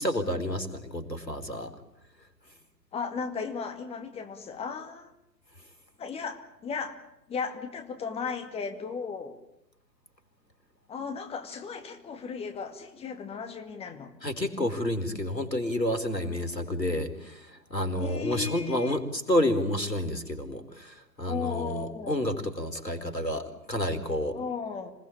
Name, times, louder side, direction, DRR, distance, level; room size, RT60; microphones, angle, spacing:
voice 1, 0.0-1.7 14.2-24.4, left 1 dB, 90° left, 7 dB, 4.6 m, -30 dB
voice 2, 2.9-5.1 6.0-7.0 7.3-9.4 10.9-14.1 18.0-19.0 21.3-22.2 24.3-24.9, left 5 dB, 10° left, 6 dB, 2.4 m, -35 dB
27.0 x 19.0 x 8.7 m, 0.85 s
figure-of-eight pair, 120°, 49 cm